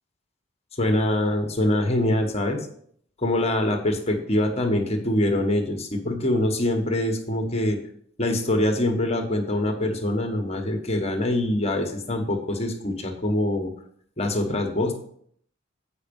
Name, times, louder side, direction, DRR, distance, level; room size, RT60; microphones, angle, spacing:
voice 1, 0.8-2.6 3.2-7.8 8.2-13.7 14.2-14.9, left 1 dB, 35° left, 4 dB, 1.2 m, -24 dB
8.1 x 5.2 x 5.2 m, 0.63 s
head